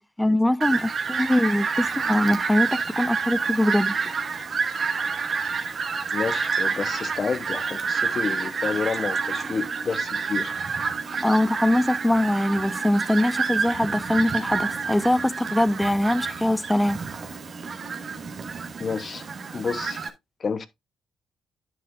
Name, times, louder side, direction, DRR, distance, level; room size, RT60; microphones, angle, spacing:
voice 1, 0.0-4.1 11.2-17.0, left 1 dB, 5° left, 0.3 m, -23 dB
Fowl, 0.6-20.1, right 5 dB, 50° right, 1.9 m, -28 dB
voice 2, 6.1-10.6 18.8-19.3 19.5-20.0 20.4-20.7, left 5 dB, 40° left, 0.9 m, -29 dB
10.0 x 7.5 x 2.5 m
cardioid pair, 90°, 0 cm